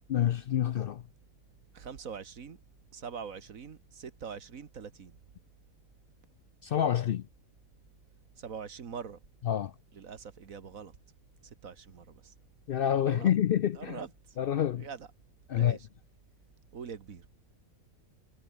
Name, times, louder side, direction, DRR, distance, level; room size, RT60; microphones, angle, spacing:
voice 1, 0.1-1.0 6.6-7.3 9.4-9.7 12.7-14.0 14.4-14.9 15.5-15.8, left 10 dB, 70° left, 0.5 m, -27 dB
voice 2, 1.7-2.6 2.9-5.2 8.4-9.2 9.9-10.9 11.6-12.3 13.1-13.3 13.8-14.1 14.8-15.1 15.6-15.8 16.7-17.3, right 6 dB, 75° right, 1.9 m, -43 dB
omnidirectional pair, 1.5 m